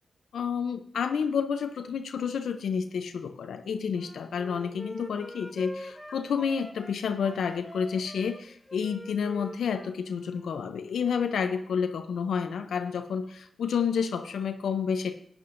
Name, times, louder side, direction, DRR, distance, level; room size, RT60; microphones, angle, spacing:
voice 1, 0.3-15.1, left 6 dB, 90° left, 8 dB, 0.5 m, -30 dB
Wind instrument woodwind instrument, 3.9-7.0 7.2-10.5, left 1 dB, 5° left, 0.7 m, -44 dB
15.0 x 9.5 x 2.5 m, 0.68 s
cardioid pair, 60°, 0 cm